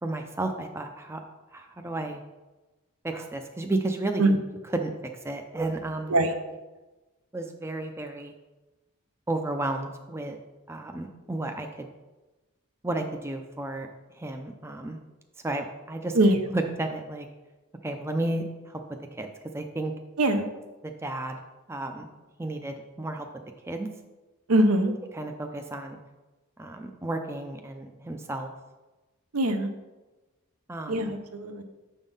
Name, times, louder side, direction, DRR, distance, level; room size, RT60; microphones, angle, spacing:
voice 1, 0.0-1.2 1.5-2.2 3.0-4.3 4.7-4.9 5.2-6.1 7.3-8.3 9.3-10.4 10.7-11.9 12.8-13.9 14.1-15.0 15.4-16.2 16.5-17.3 17.8-18.8 19.1-19.3 19.5-19.9 20.8-21.4 21.7-22.1 22.4-23.3 23.6-23.9 25.1-26.0 26.6-28.5 30.7-31.1, right 2 dB, 10° right, 4 dB, 0.4 m, -32 dB
voice 2, 24.5-24.9 29.3-29.7 30.9-31.6, right 1 dB, 90° right, 7 dB, 0.7 m, -22 dB
7.1 x 3.7 x 5.4 m, 1.1 s
head